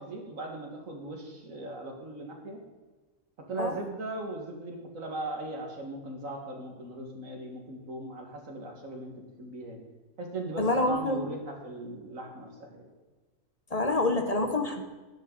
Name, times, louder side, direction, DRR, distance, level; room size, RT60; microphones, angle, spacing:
voice 1, 0.0-2.6 3.5-9.8 10.2-12.9, right 2 dB, 75° right, 2 dB, 2.3 m, -38 dB
voice 2, 10.6-11.3 13.7-14.8, left 2 dB, 30° left, 6 dB, 0.9 m, -27 dB
11.5 x 10.5 x 4.0 m, 1.3 s
omnidirectional pair, 1.4 m